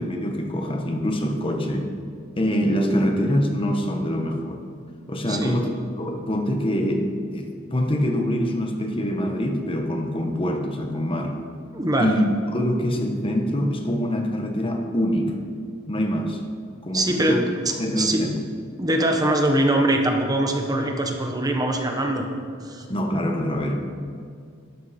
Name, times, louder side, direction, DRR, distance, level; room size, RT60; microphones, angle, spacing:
voice 1, 0.0-1.9 2.4-4.6 5.1-11.4 12.0-12.2 12.5-15.4 15.9-16.4 16.8-17.4 17.8-18.4 22.9-23.8, equal, 25° left, 4 dB, 1.2 m, -24 dB
voice 2, 5.3-5.6 11.7-12.1 16.9-18.2 18.8-22.3 22.6-22.8, right 1 dB, 20° right, 3 dB, 1.0 m, -23 dB
13.0 x 11.5 x 4.3 m, 2.1 s
head